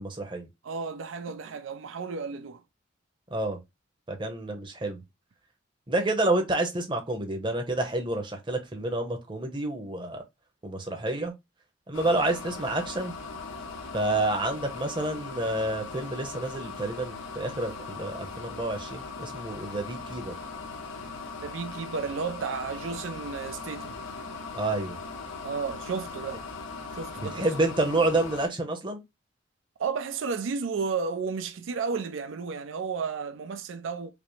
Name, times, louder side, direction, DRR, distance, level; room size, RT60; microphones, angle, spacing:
voice 1, 0.0-0.5 3.3-3.6 4.1-5.0 5.9-10.2 10.6-11.3 11.9-13.1 13.9-20.3 24.5-25.0 27.2-29.0, right 2 dB, 25° right, 0.7 m, -29 dB
voice 2, 0.6-2.6 21.4-24.0 25.4-26.4 26.9-27.5 29.8-34.1, right 5 dB, 80° right, 0.4 m, -33 dB
sound 1, 11.9-28.5, left 4 dB, 90° left, 0.8 m, -39 dB
5.0 x 2.0 x 3.1 m
head